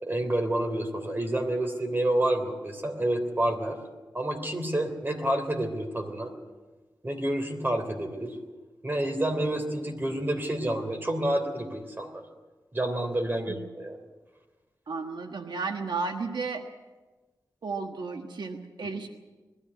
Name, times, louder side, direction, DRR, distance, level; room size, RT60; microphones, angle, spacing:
voice 1, 0.0-3.8 4.1-6.3 7.0-8.4 8.8-12.2 12.7-14.0 18.8-18.9, right 1 dB, 25° right, 5 dB, 3.3 m, -29 dB
voice 2, 14.9-16.7 17.6-19.1, right 4 dB, 75° right, 4 dB, 1.4 m, -33 dB
21.0 x 14.0 x 9.6 m, 1.2 s
wide cardioid pair, 90°, 8 cm